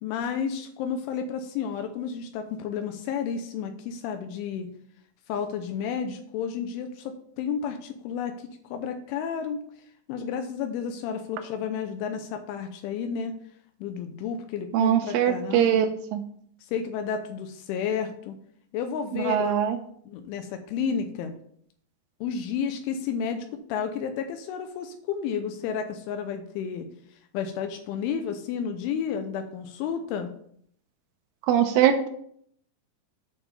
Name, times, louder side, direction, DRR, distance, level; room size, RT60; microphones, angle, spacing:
voice 1, 0.0-4.7 5.3-9.6 10.1-13.3 13.8-15.9 16.7-18.4 18.7-19.6 20.1-21.3 22.2-26.9 27.3-30.3, left 7 dB, 85° left, 6 dB, 3.2 m, -31 dB
voice 2, 14.7-15.9 16.1-16.2 19.1-19.8 31.5-32.1, right 10 dB, 85° right, 6 dB, 3.2 m, -22 dB
8.9 x 4.3 x 6.8 m, 0.64 s
omnidirectional pair, 5.5 m